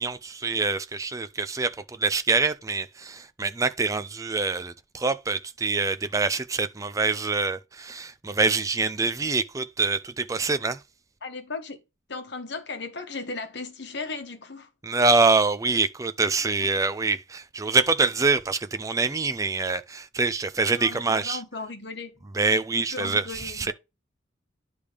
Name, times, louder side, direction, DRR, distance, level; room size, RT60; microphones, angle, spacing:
voice 1, 0.0-10.8 14.8-21.4 22.4-23.7, right 3 dB, 15° right, 0.4 m, -25 dB
voice 2, 11.2-11.8 12.1-14.7 16.6-16.7 20.7-22.2 22.7-23.7, left 3 dB, 60° left, 1.1 m, -36 dB
10.0 x 3.5 x 4.9 m
head